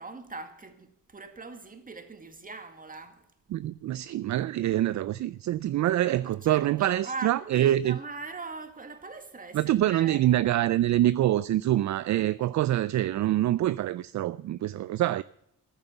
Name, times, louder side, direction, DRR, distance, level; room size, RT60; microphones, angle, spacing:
voice 1, 0.0-3.3 6.2-10.3, right 4 dB, 25° right, 2.1 m, -41 dB
voice 2, 3.5-8.0 9.5-15.2, right 13 dB, 55° right, 0.4 m, -25 dB
14.5 x 11.0 x 6.9 m
cardioid pair, 120°, 34 cm